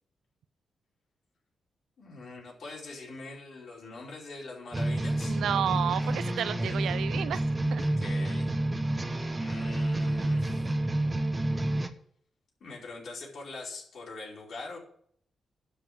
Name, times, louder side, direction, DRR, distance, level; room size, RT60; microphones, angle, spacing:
voice 1, 2.0-5.4 5.9-6.2 6.5-6.7 7.8-8.5 9.4-10.7 12.6-14.8, left 3 dB, 65° left, -3 dB, 4.8 m, -43 dB
sound 1, 4.7-11.9, right 1 dB, 20° right, 1.1 m, -29 dB
voice 2, 5.2-7.4 7.7-7.8, right 9 dB, 90° right, 15 dB, 0.6 m, -31 dB
12.0 x 5.6 x 8.7 m, 0.64 s
cardioid pair, 100°, 0 cm